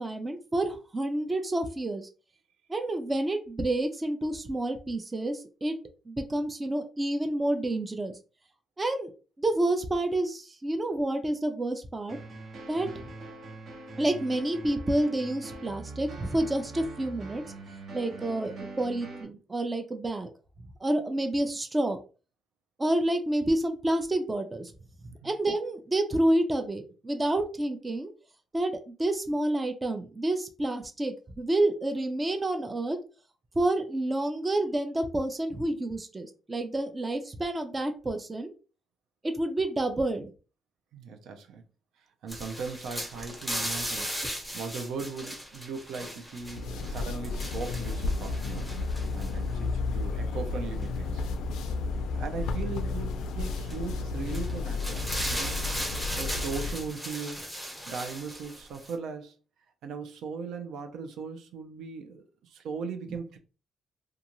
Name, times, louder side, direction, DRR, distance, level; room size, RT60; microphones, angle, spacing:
voice 1, 0.0-2.1 2.7-5.7 6.1-8.1 8.8-9.1 9.4-12.2 12.7-12.9 14.0-17.4 17.9-20.3 20.8-22.0 22.8-24.7 25.2-28.1 28.5-33.0 33.6-38.5 39.2-40.3, right 1 dB, 20° right, 0.5 m, -29 dB
sound 1, 12.1-19.2, right 3 dB, 55° right, 1.0 m, -43 dB
voice 2, 40.9-41.6 42.0-44.2 44.5-48.7 49.1-51.2 52.1-55.6 56.2-57.5 57.9-59.4 59.8-63.4, right 5 dB, 80° right, 0.5 m, -38 dB
sound 2, 42.3-49.3 50.8-50.9 53.4-53.8 54.3-58.9, equal, 5° right, 1.0 m, -37 dB
sound 3, 46.4-56.9, left 3 dB, 80° left, 0.3 m, -32 dB
2.5 x 2.3 x 2.9 m
cardioid pair, 90°, 0 cm